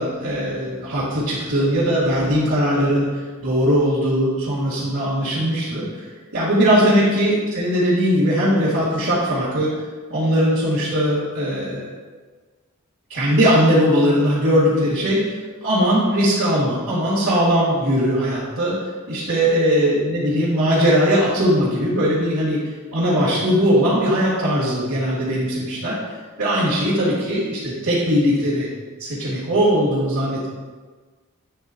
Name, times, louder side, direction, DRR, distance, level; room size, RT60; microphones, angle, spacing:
voice 1, 0.0-6.1 6.3-9.7 10.1-11.9 13.1-15.3 15.6-18.8 19.1-26.0 26.4-28.7 29.0-30.5, equal, 75° right, -9 dB, 1.9 m, -19 dB
8.7 x 3.5 x 4.0 m, 1.4 s
head